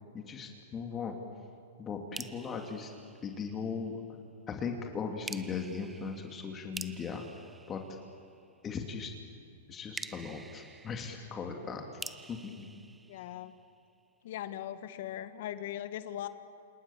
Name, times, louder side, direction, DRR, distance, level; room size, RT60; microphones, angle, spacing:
voice 1, 0.1-1.2 1.8-2.9 3.2-4.0 4.5-7.2 7.7-7.8 8.6-9.1 9.7-11.8 12.3-12.7, left 5 dB, 25° left, 3 dB, 2.9 m, -38 dB
sound 1, 2.1-3.9 5.3-8.6 9.9-13.9, right 4 dB, 10° right, 0.9 m, -48 dB
voice 2, 13.1-13.5 14.2-16.3, left 11 dB, 60° left, 11 dB, 1.6 m, -39 dB
29.0 x 27.5 x 7.4 m, 2.5 s
hypercardioid pair, 130°, 0 cm